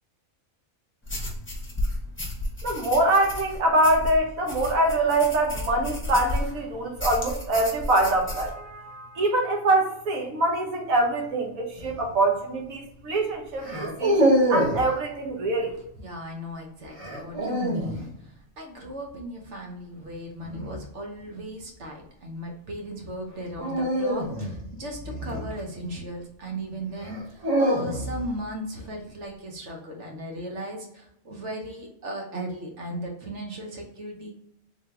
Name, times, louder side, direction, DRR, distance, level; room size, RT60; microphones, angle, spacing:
sound 1, 1.0-6.6 7.0-8.5, left 1 dB, 10° left, 0.7 m, -32 dB
voice 1, 2.6-15.7, right 2 dB, 85° right, 1 dB, 1.3 m, -24 dB
sound 2, 11.8-12.1 13.6-14.9 17.0-18.0 20.4-20.8 23.6-26.0 27.0-28.3, right 1 dB, 30° right, 0.8 m, -25 dB
voice 2, 16.0-34.3, right 1 dB, 60° right, 1 dB, 1.1 m, -36 dB
3.7 x 2.7 x 3.3 m, 0.77 s
omnidirectional pair, 1.4 m